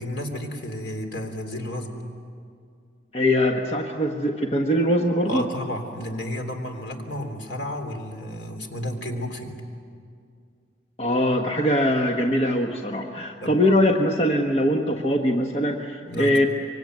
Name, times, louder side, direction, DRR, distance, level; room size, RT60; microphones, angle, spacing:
voice 1, 0.0-2.0 5.2-9.6 13.4-13.6 16.0-16.5, left 1 dB, 75° left, 4 dB, 3.5 m, -32 dB
voice 2, 3.1-5.5 11.0-16.5, equal, 35° left, 2 dB, 1.4 m, -22 dB
25.0 x 24.0 x 9.5 m, 2.2 s
head